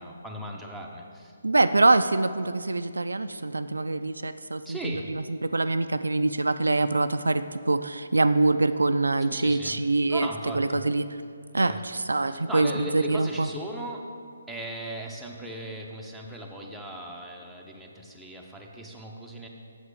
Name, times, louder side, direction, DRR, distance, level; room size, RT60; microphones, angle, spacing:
voice 1, 0.0-1.4 4.6-5.2 9.3-9.8 10.1-10.9 11.6-11.8 12.2-14.1 14.5-19.5, right 1 dB, ahead, -3 dB, 0.8 m, -38 dB
voice 2, 1.4-10.3 10.5-11.0 11.5-13.5, right 2 dB, 75° right, 11 dB, 0.3 m, -24 dB
8.0 x 7.3 x 4.9 m, 2.3 s
figure-of-eight pair, 140°, 0 cm